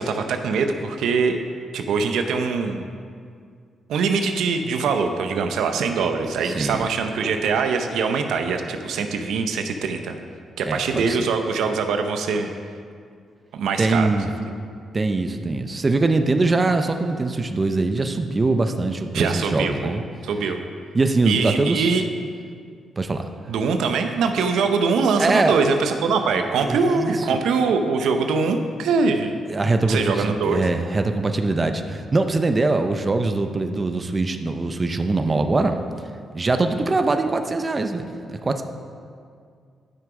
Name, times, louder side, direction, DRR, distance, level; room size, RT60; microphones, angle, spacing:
voice 1, 0.0-1.4 1.7-2.9 3.9-10.2 10.6-12.5 13.5-14.1 19.1-19.9 20.2-20.6 21.2-22.1 23.5-29.3 29.7-30.6, right 4 dB, 85° right, 6 dB, 0.7 m, -23 dB
voice 2, 6.4-6.9 10.7-11.3 13.8-14.3 14.9-20.0 20.9-22.0 23.0-23.3 25.2-25.6 26.6-27.1 29.5-35.8 36.3-38.6, right 3 dB, 30° right, 7 dB, 0.6 m, -22 dB
10.5 x 6.1 x 4.9 m, 2.2 s
cardioid pair, 85°, 0 cm